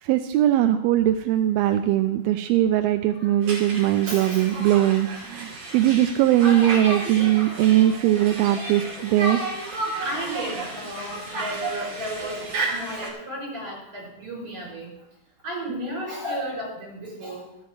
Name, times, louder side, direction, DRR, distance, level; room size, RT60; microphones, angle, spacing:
voice 1, 0.0-9.4, right 13 dB, 85° right, 8 dB, 2.4 m, -20 dB
Conversation, 3.4-13.1, right 2 dB, 55° right, 3.8 m, -32 dB
voice 2, 3.9-4.5 6.4-6.8 7.1-7.6 8.1-8.3 10.0-14.9 15.4-17.5, equal, 35° right, -5 dB, 6.9 m, -34 dB
13.0 x 9.3 x 4.7 m, 0.80 s
omnidirectional pair, 4.3 m